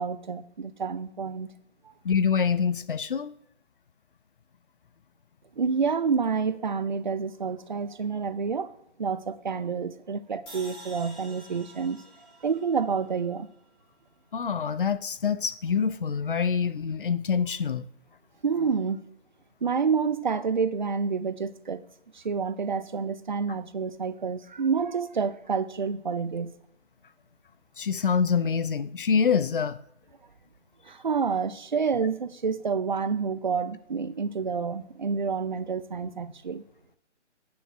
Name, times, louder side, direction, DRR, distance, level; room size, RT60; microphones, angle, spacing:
voice 1, 0.0-1.5 5.6-8.7 9.0-12.0 12.4-13.5 18.4-19.1 19.6-21.8 22.1-26.5 30.8-36.6, right 5 dB, 40° right, 0.5 m, -28 dB
voice 2, 2.0-3.3 14.3-17.9 27.8-29.8, left 6 dB, 50° left, 0.5 m, -25 dB
sound 1, 10.5-13.7, equal, 15° left, 3.2 m, -48 dB
16.0 x 9.4 x 2.2 m
figure-of-eight pair, 150°, 36 cm